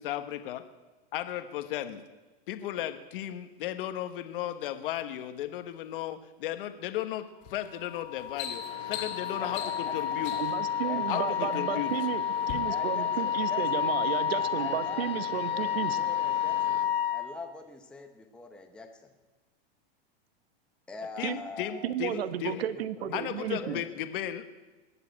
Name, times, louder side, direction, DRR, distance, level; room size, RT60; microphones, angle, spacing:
voice 1, 0.0-0.6 1.1-2.0 2.5-10.3 11.1-11.9 21.2-22.6 23.1-24.5, left 12 dB, 55° left, 9 dB, 1.3 m, -35 dB
sound 1, 7.4-7.7 8.0-10.7 11.5-12.0 12.4-12.6, left 9 dB, 40° left, 2.4 m, -40 dB
Wind instrument woodwind instrument, 7.8-17.3, left 9 dB, 20° left, 1.9 m, -30 dB
sound 2, 8.5-16.9, left 5 dB, 85° left, 3.6 m, -46 dB
voice 2, 9.4-9.9 10.3-10.4 10.8-12.0 12.7-13.8 14.4-19.1 20.9-23.8, left 3 dB, 5° left, 4 dB, 0.7 m, -44 dB
voice 3, 10.4-16.0 21.2-21.4 21.8-23.8, right 11 dB, 70° right, 13 dB, 1.2 m, -33 dB
21.0 x 7.5 x 8.6 m, 1.2 s
supercardioid pair, 160°, 31 cm